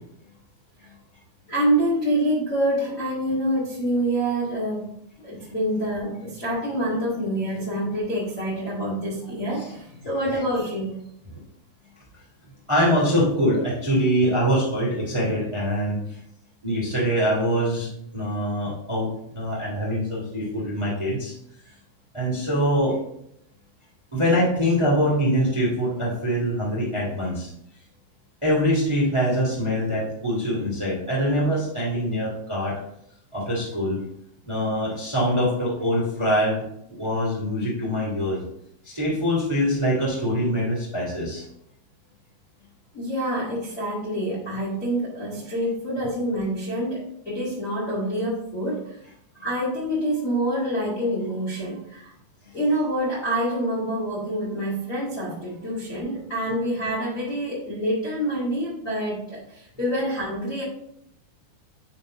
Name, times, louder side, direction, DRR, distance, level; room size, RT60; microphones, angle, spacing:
voice 1, 1.5-4.9 5.2-11.0 42.9-48.9 49.4-52.1 52.5-60.6, right 1 dB, 75° left, -6 dB, 0.7 m, -26 dB
voice 2, 12.7-16.2 16.6-21.3 22.1-23.0 24.1-27.5 28.4-32.8 33.3-34.0 34.4-38.4 38.8-41.4, equal, 20° right, -4 dB, 0.7 m, -24 dB
9.4 x 4.4 x 3.8 m, 0.75 s
omnidirectional pair, 5.5 m